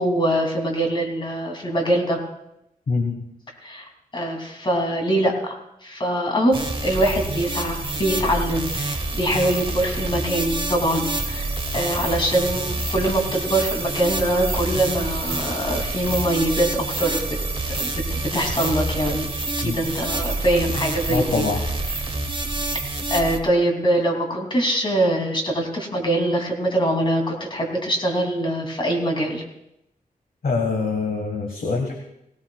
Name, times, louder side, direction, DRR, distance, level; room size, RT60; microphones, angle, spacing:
voice 1, 0.0-2.2 3.6-17.4 17.8-19.3 19.6-21.4 23.1-29.4, right 1 dB, 35° left, 1 dB, 2.9 m, -23 dB
voice 2, 2.9-3.2 19.6-19.9 21.1-21.6 30.4-31.9, left 4 dB, 75° left, 3 dB, 1.6 m, -24 dB
sound 1, 6.5-23.4, right 2 dB, 35° right, 1.2 m, -27 dB
18.0 x 18.0 x 2.4 m, 0.82 s
wide cardioid pair, 105°, 15 cm